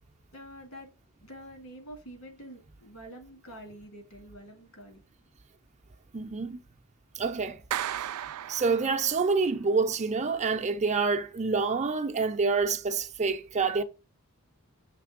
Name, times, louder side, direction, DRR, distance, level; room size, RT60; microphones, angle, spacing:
voice 1, 0.3-0.9 1.2-5.0, equal, 70° left, 2.5 m, -47 dB
voice 2, 6.1-6.6 7.1-7.6 8.5-13.8, right 4 dB, 30° right, 0.6 m, -27 dB
Clapping, 7.7-9.4, right 11 dB, 85° right, 0.4 m, -35 dB
6.7 x 3.3 x 5.0 m
head